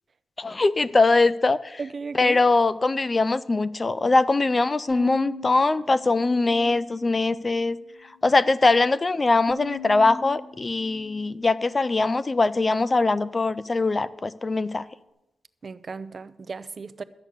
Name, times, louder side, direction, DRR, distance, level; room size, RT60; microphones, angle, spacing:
voice 1, 0.4-1.8 2.1-7.8 8.2-14.8, left 3 dB, 30° left, 0.4 m, -22 dB
voice 2, 1.8-2.4 15.6-17.0, right 4 dB, 40° right, 0.5 m, -35 dB
Bowed string instrument, 4.9-7.3 7.7-8.5 9.5-12.0, left 3 dB, 50° left, 2.7 m, -42 dB
12.5 x 8.1 x 6.5 m
wide cardioid pair, 120°, 0 cm